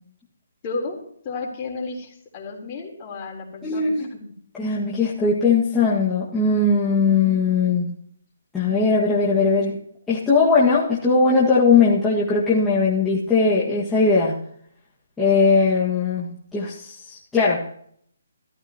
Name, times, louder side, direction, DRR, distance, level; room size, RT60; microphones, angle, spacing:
voice 1, 0.6-1.0 1.2-4.2, left 3 dB, 25° left, -2 dB, 3.7 m, -32 dB
voice 2, 3.6-4.1 4.6-7.9 8.5-9.8 10.1-14.3 15.2-17.7, left 4 dB, 5° left, -9 dB, 1.9 m, -19 dB
15.0 x 13.0 x 3.0 m, 0.65 s
hypercardioid pair, 160°, 0 cm